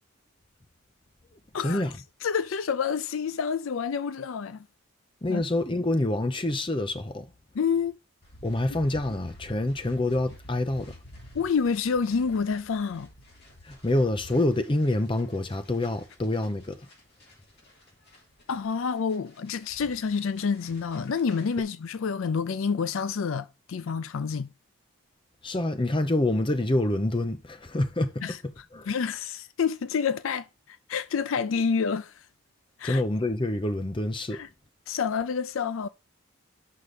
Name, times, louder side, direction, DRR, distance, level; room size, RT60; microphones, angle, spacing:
voice 1, 1.6-2.0 5.2-7.3 8.4-11.0 13.6-16.8 25.4-28.9 32.8-34.4, left 1 dB, 25° left, 0.7 m, -27 dB
voice 2, 2.2-4.7 5.3-5.4 7.5-7.9 11.3-13.1 18.5-24.5 28.2-28.4 28.9-32.2 32.8-33.0 34.3-34.5 34.9-35.9, left 6 dB, 65° left, 0.4 m, -28 dB
sound 1, 8.2-21.6, left 1 dB, 50° left, 3.3 m, -50 dB
6.5 x 5.6 x 5.0 m
head